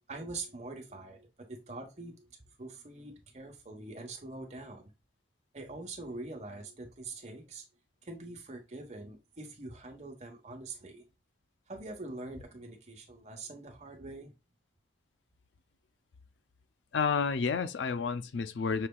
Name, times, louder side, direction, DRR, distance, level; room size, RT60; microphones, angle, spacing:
voice 1, 0.1-2.3 2.6-4.9 5.5-7.6 8.0-11.1 11.7-14.4, right 2 dB, 40° right, 1.1 m, -44 dB
voice 2, 16.9-18.9, left 5 dB, 85° left, 0.5 m, -30 dB
6.3 x 3.3 x 2.3 m
head